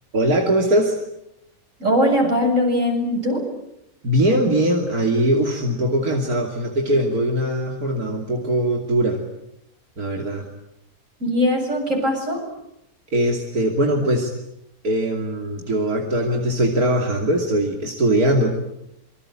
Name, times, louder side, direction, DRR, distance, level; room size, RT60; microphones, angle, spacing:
voice 1, 0.1-1.0 4.0-9.2 10.0-10.5 13.1-14.3 14.8-18.5, right 1 dB, 90° right, 2 dB, 3.3 m, -21 dB
voice 2, 1.8-3.4 11.2-12.4, equal, 60° right, 2 dB, 8.1 m, -20 dB
27.0 x 23.5 x 8.8 m, 0.81 s
omnidirectional pair, 1.5 m